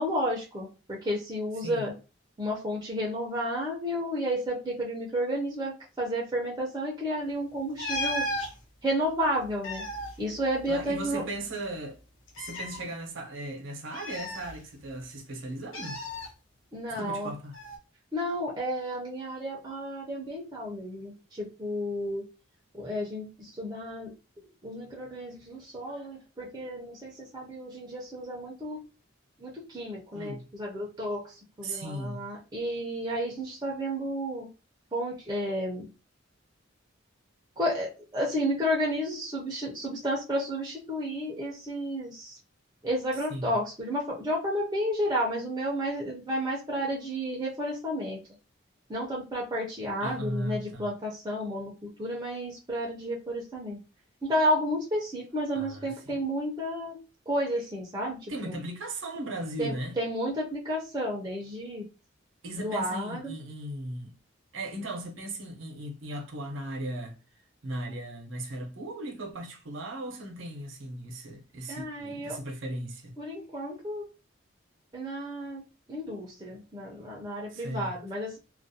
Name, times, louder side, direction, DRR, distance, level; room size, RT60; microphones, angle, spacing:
voice 1, 0.0-1.9 2.4-8.3 8.8-9.8 10.2-11.2 16.7-17.3 18.1-22.2 22.7-24.1 24.6-28.8 29.4-34.5 34.9-35.8 37.6-42.4 42.8-48.2 48.9-53.8 54.2-57.0 57.3-58.5 59.6-61.9 62.5-63.3 71.7-72.4 73.2-74.0 74.9-75.6 75.9-78.4, equal, 20° right, 0.5 m, -32 dB
sound 1, 7.8-8.5 9.4-11.1 11.3-11.4 12.3-12.8 13.9-15.0 15.7-16.3 17.5-17.8, left 1 dB, 85° left, 0.8 m, -35 dB
voice 2, 10.7-12.0 12.4-16.0 16.9-17.6 30.1-30.4 31.6-32.2 43.3-43.5 50.0-50.9 55.5-56.2 58.3-60.0 62.4-64.1 64.5-67.2 67.6-73.1 77.5-78.0, right 1 dB, 70° right, 0.6 m, -37 dB
2.4 x 2.1 x 2.6 m
head